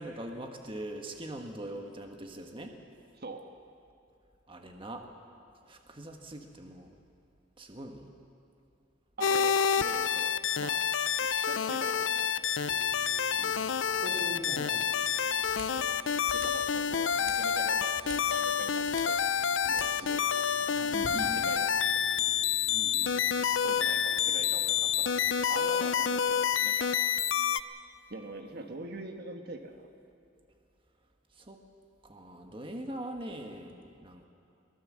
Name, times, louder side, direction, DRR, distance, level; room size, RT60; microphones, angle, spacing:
voice 1, 0.0-2.7 4.5-5.1 5.7-7.0 7.6-8.1 13.3-13.7 21.2-21.5 22.7-23.2 31.4-31.6 32.0-34.2, right 1 dB, 30° right, 3 dB, 1.4 m, -42 dB
voice 2, 3.2-3.5 9.2-10.8 11.2-12.7 15.6-16.0 16.3-20.5 20.9-22.0 23.6-26.9 28.1-29.9, right 2 dB, 55° right, 5 dB, 1.5 m, -44 dB
sound 1, 9.2-27.6, left 8 dB, 80° left, 0.5 m, -28 dB
sound 2, 12.6-25.3, right 1 dB, 90° right, 3.9 m, -48 dB
22.5 x 18.5 x 7.4 m, 2.5 s
head